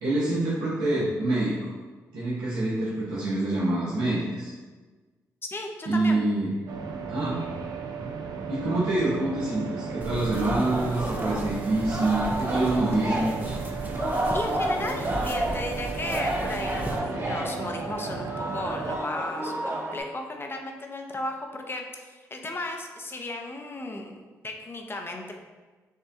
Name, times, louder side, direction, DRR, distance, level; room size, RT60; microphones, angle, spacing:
voice 1, 0.0-1.6 2.1-4.5 5.8-6.5 7.1-7.4 8.5-13.6, right 2 dB, 85° right, -10 dB, 1.1 m, -26 dB
voice 2, 5.4-6.2 14.3-25.3, left 2 dB, 30° left, 2 dB, 0.7 m, -35 dB
sound 1, 6.7-19.0, right 5 dB, 70° right, 0.5 m, -35 dB
sound 2, 10.0-17.0, right 1 dB, 25° right, 0.6 m, -37 dB
Singing, 10.3-20.0, right 1 dB, 40° right, 1.2 m, -31 dB
6.4 x 2.2 x 2.7 m, 1.3 s
supercardioid pair, 45°, 7 cm